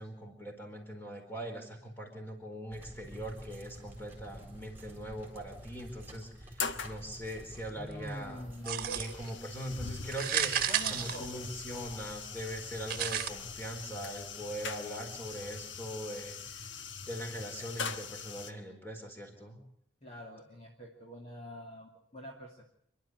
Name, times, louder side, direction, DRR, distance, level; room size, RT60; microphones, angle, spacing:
voice 1, 0.0-16.7 17.0-19.6, equal, 10° left, 2 dB, 4.4 m, -41 dB
sound 1, 2.7-17.3, equal, 10° right, 4.4 m, -51 dB
sound 2, 3.5-3.8 5.0-5.1 5.6-5.7 6.2-7.0 8.1-18.5, left 5 dB, 80° left, 1.4 m, -42 dB
voice 2, 7.8-9.0 10.7-11.5 20.0-22.7, equal, 35° left, 0 dB, 2.4 m, -45 dB
sound 3, 8.6-9.3 10.1-11.8 12.9-13.3, right 10 dB, 50° right, 1.4 m, -32 dB
27.5 x 12.0 x 8.0 m, 0.67 s
head